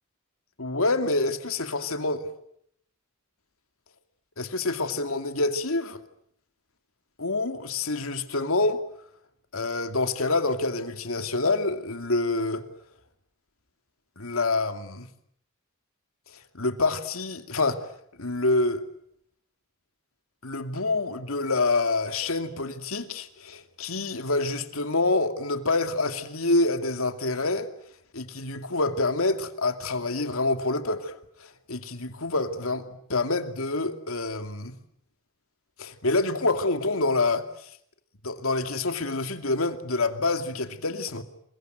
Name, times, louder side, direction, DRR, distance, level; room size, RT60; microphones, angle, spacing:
voice 1, 0.6-2.3 4.4-6.0 7.2-8.8 9.5-12.7 14.2-15.1 16.5-17.9 18.2-18.8 20.4-27.7 28.1-34.7 35.8-37.7 38.2-41.2, left 2 dB, 80° left, 2.6 m, -27 dB
27.5 x 23.0 x 9.3 m
head